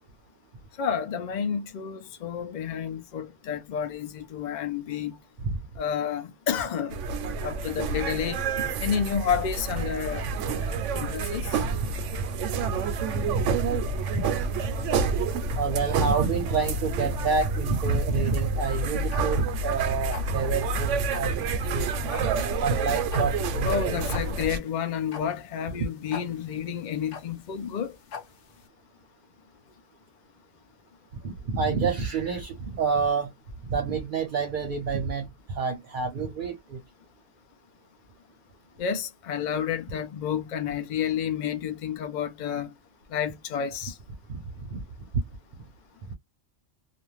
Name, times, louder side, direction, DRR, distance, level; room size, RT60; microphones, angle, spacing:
voice 1, 0.8-5.2 5.8-7.0 7.4-8.4 8.8-11.6 23.6-28.0 38.8-42.7 43.1-44.0, left 8 dB, 50° left, 0.5 m, -30 dB
sound 1, 6.9-24.6, right 4 dB, 80° right, 0.9 m, -28 dB
voice 2, 15.6-21.9 22.6-24.0 31.2-33.3 33.7-36.8 44.3-44.4 44.7-44.8, right 5 dB, 50° right, 0.7 m, -28 dB
sound 2, 18.7-28.6, left 6 dB, 70° left, 1.0 m, -43 dB
2.5 x 2.2 x 3.0 m
omnidirectional pair, 1.3 m